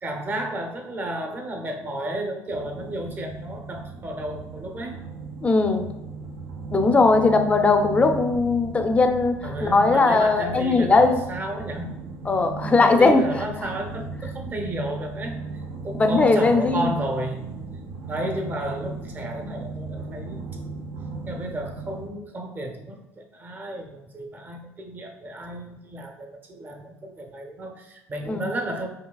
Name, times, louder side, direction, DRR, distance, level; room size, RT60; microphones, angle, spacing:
voice 1, 0.0-5.0 9.4-12.0 12.8-17.5 18.1-20.5 21.3-28.9, right 1 dB, 30° right, 4 dB, 0.7 m, -32 dB
sound 1, 2.5-22.1, right 4 dB, 75° right, 0.6 m, -36 dB
voice 2, 5.4-5.9 6.7-11.2 12.3-13.2 15.9-16.9 28.3-28.5, left 3 dB, 20° left, 6 dB, 0.4 m, -19 dB
4.7 x 2.7 x 2.3 m, 0.91 s
cardioid pair, 105°, 6 cm